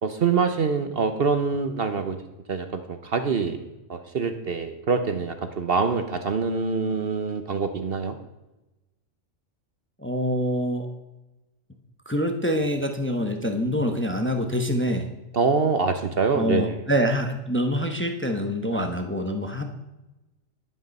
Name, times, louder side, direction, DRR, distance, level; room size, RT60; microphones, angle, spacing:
voice 1, 0.0-2.2 2.5-3.6 3.9-8.2 15.3-16.8 18.7-18.9, right 5 dB, 50° right, 8 dB, 1.0 m, -25 dB
voice 2, 10.0-10.9 12.1-15.1 16.3-19.6, equal, 10° left, 4 dB, 0.9 m, -25 dB
11.0 x 9.4 x 5.4 m, 1.0 s
omnidirectional pair, 1.3 m